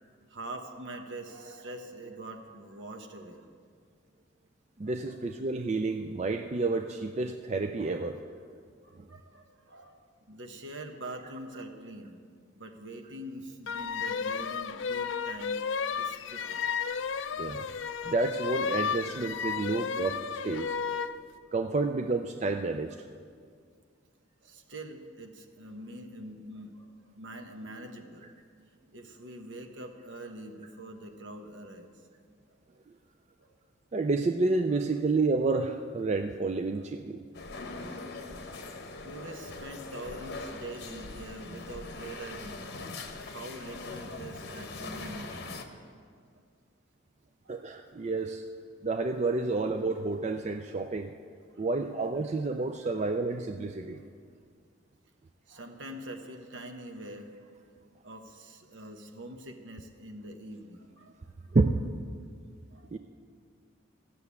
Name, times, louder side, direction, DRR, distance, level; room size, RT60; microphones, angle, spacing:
voice 1, 0.3-3.5 4.8-5.2 7.8-8.1 8.8-12.2 12.6-15.7 16.0-16.7 17.9-18.1 19.5-19.7 24.4-28.3 28.9-31.9 32.5-32.6 33.4-33.6 36.8-36.9 37.5-37.7 38.4-38.7 39.0-42.8 43.2-45.4 45.7-45.8 47.4-47.7 49.4-49.5 51.5-51.7 53.9-54.1 55.5-61.1 62.7-63.0, right 1 dB, 70° right, 4 dB, 1.2 m, -44 dB
voice 2, 4.8-8.2 9.0-9.1 17.4-17.7 18.0-20.8 21.5-23.0 33.9-37.2 47.5-48.4 48.8-51.1 51.6-54.0 61.5-61.8 62.9-63.0, right 3 dB, 35° right, 6 dB, 0.4 m, -30 dB
sound 1, 13.7-21.2, left 6 dB, 70° left, 0.4 m, -33 dB
sound 2, 37.3-45.7, left 3 dB, 55° left, 1.0 m, -41 dB
14.0 x 6.8 x 8.3 m, 2.1 s
head